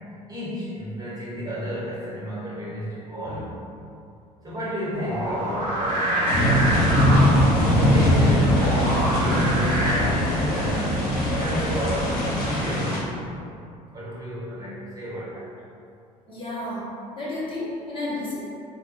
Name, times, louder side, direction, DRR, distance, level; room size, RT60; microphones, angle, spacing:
voice 1, 0.3-3.6 4.4-13.3 13.9-15.5, equal, 20° right, -9 dB, 1.5 m, -32 dB
sound 1, 4.9-9.9, right 1 dB, 80° right, 1.1 m, -27 dB
sound 2, 6.3-13.0, equal, 50° left, 0.9 m, -22 dB
sound 3, 6.4-12.3, left 1 dB, 75° left, 0.5 m, -27 dB
voice 2, 16.3-16.8 17.2-18.4, left 2 dB, 25° left, -8 dB, 1.4 m, -31 dB
3.5 x 2.2 x 3.2 m, 2.5 s
figure-of-eight pair, 60°, 20 cm